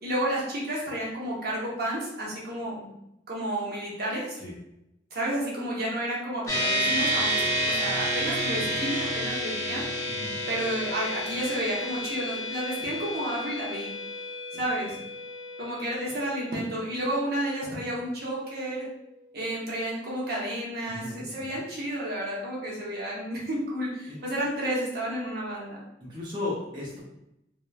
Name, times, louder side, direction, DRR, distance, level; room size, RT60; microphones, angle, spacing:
voice 1, 0.0-2.9 3.3-4.4 5.1-9.9 10.5-13.9 14.5-15.0 15.6-18.9 19.3-25.8, right 1 dB, 55° right, -5 dB, 0.7 m, -31 dB
sound 1, 6.5-20.1, equal, 15° left, 0.7 m, -31 dB
voice 2, 10.0-10.4 20.9-21.6 24.1-24.2 26.0-27.0, left 2 dB, 25° right, -7 dB, 0.6 m, -36 dB
2.9 x 2.1 x 2.3 m, 0.84 s
head